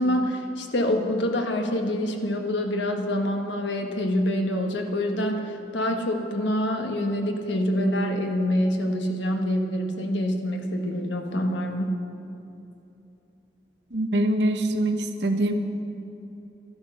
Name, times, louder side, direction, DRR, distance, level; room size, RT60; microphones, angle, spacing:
voice 1, 0.0-12.0, left 1 dB, 70° left, 4 dB, 1.4 m, -26 dB
voice 2, 13.9-15.5, right 1 dB, 65° right, 6 dB, 1.1 m, -24 dB
12.5 x 12.0 x 6.6 m, 2.9 s
head